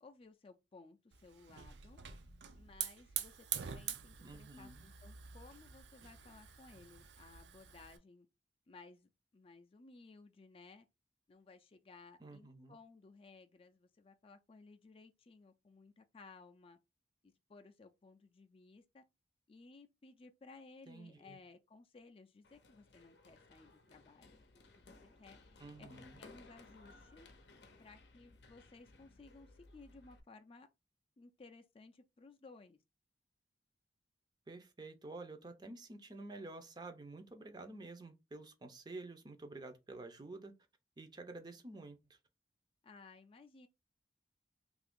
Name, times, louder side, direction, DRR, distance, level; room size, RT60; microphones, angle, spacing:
voice 1, 0.0-2.0 2.5-8.3 8.7-10.9 11.3-16.8 17.2-19.0 19.5-24.4 24.8-24.9 25.2-25.9 26.2-27.3 27.8-30.7 31.2-32.8 42.8-43.7, left 3 dB, 35° left, 0.4 m, -59 dB
Hiss / Fire, 1.1-8.0, right 9 dB, 80° right, 0.5 m, -46 dB
voice 2, 4.2-4.9 12.2-12.8 20.9-21.4 25.6-26.2 34.5-40.5 41.0-42.2, right 2 dB, 25° right, 0.5 m, -50 dB
Run, 22.4-30.2, left 3 dB, 70° left, 0.6 m, -60 dB
2.8 x 2.5 x 3.6 m
head